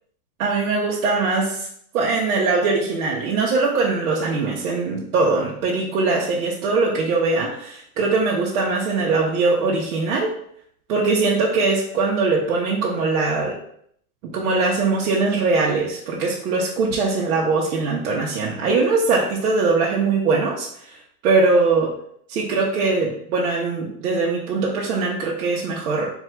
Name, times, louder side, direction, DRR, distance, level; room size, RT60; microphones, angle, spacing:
voice 1, 0.4-1.7 1.9-10.3 10.9-13.6 14.3-21.0 21.2-21.9 22.3-26.1, right 3 dB, 70° right, -3 dB, 0.8 m, -21 dB
3.4 x 2.4 x 4.3 m, 0.68 s
supercardioid pair, 170°, 44 cm